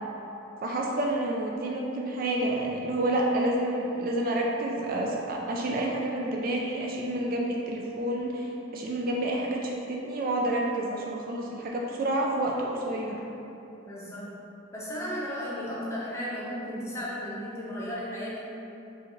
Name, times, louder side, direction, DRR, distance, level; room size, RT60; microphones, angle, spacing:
voice 1, 0.6-13.2, right 1 dB, 45° right, -1 dB, 0.3 m, -29 dB
voice 2, 13.8-14.3 14.7-18.4, equal, 15° left, -7 dB, 0.6 m, -34 dB
4.8 x 2.5 x 3.0 m, 3.0 s
head